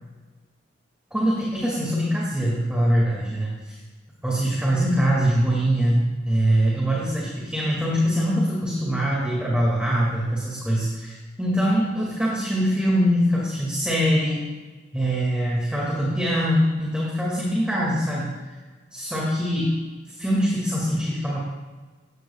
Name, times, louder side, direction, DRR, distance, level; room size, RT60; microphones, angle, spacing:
voice 1, 1.1-3.8 4.2-14.4 14.9-18.3 18.9-19.7 20.1-21.4, equal, 5° right, -5 dB, 2.0 m, -23 dB
17.5 x 14.5 x 2.3 m, 1.3 s
head